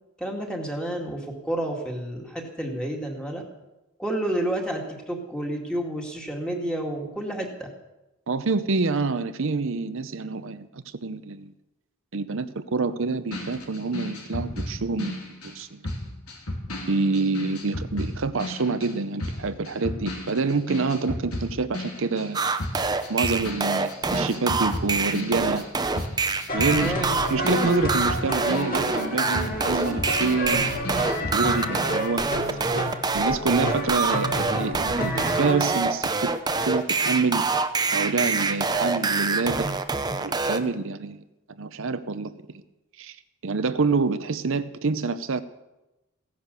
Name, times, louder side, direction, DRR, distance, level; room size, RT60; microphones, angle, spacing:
voice 1, 0.2-3.4 4.0-7.7 26.7-27.1, right 1 dB, 5° left, 1 dB, 2.1 m, -30 dB
voice 2, 8.3-11.5 12.1-15.8 16.9-22.4 23.1-25.7 26.5-30.8 31.3-32.7 33.1-36.3 36.6-37.5 37.9-39.7 40.2-41.2 41.6-42.6 43.0-43.2 43.4-45.4, right 4 dB, 60° right, 11 dB, 0.7 m, -27 dB
sound 1, 13.3-22.3 22.6-31.5, left 1 dB, 85° left, 3.1 m, -34 dB
sound 2, 22.3-40.6, right 4 dB, 20° right, 0.7 m, -25 dB
sound 3, 26.5-35.8, equal, 40° left, 2.4 m, -30 dB
16.0 x 10.5 x 6.8 m, 0.99 s
head